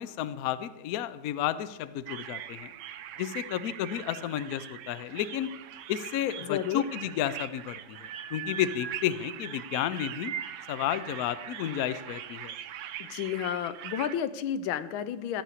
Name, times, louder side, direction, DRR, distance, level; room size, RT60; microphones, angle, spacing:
voice 1, 0.0-2.7 3.2-5.5 5.9-10.3 10.7-12.5, left 11 dB, 70° left, 14 dB, 0.8 m, -32 dB
sound 1, 2.1-14.2, right 10 dB, 85° right, 1.4 m, -41 dB
voice 2, 6.4-6.8 13.0-15.4, left 9 dB, 90° left, 13 dB, 1.5 m, -31 dB
14.0 x 6.3 x 8.2 m, 1.1 s
omnidirectional pair, 2.1 m